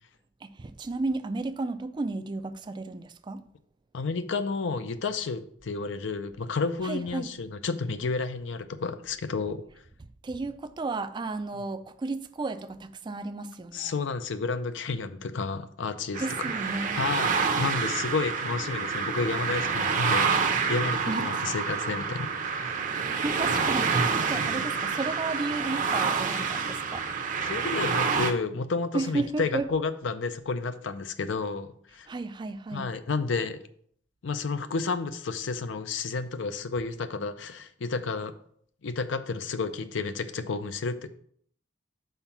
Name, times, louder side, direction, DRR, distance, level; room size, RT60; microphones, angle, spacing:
voice 1, 0.4-3.4 6.8-7.3 10.0-13.9 16.2-17.1 21.1-21.2 22.9-27.1 28.9-29.7 32.1-32.9, right 3 dB, 25° right, 0.3 m, -33 dB
voice 2, 3.9-9.6 13.7-16.2 16.9-22.9 24.4-24.5 27.5-32.1 32.7-33.6 34.2-38.3 38.8-41.1, left 4 dB, 70° left, 0.5 m, -31 dB
sound 1, 16.1-28.3, right 5 dB, 40° right, 0.7 m, -28 dB
5.7 x 4.5 x 5.8 m
head